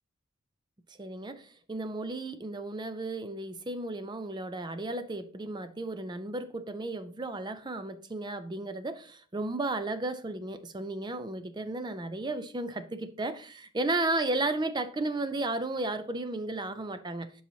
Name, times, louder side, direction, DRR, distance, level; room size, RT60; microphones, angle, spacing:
voice 1, 1.0-17.3, right 2 dB, 20° right, 0.5 m, -34 dB
10.5 x 5.6 x 2.8 m
head